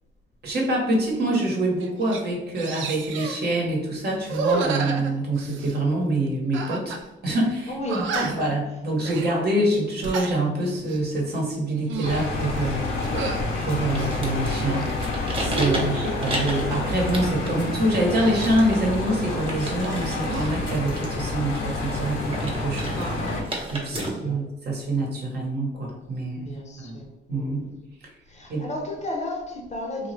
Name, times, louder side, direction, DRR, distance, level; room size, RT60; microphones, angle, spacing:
voice 1, 0.4-7.0 7.2-12.9 13.6-14.9 15.4-23.4 23.7-26.5 26.8-27.0 27.3-27.8 28.5-28.7, right 1 dB, 55° right, 1.0 m, -25 dB
sound 1, 1.3-1.5 1.8-2.2 2.6-3.4 4.2-5.8 6.5-7.0 7.3-7.4 7.9-8.5 9.0-9.3 9.9-10.3 10.8-11.1 11.7-12.3 13.0-13.4 13.9-14.9 15.4-16.4 18.2-19.6 19.8-20.5, right 4 dB, 75° right, 0.4 m, -31 dB
voice 2, 7.7-8.5 15.7-16.0 23.9-24.4 26.4-27.5 28.3-30.1, left 1 dB, 35° left, 0.7 m, -33 dB
sound 2, 12.0-23.4, left 2 dB, 75° left, 0.7 m, -29 dB
sound 3, 12.3-24.1, right 1 dB, 30° right, 0.7 m, -36 dB
2.8 x 2.3 x 3.1 m
cardioid pair, 90°, 20 cm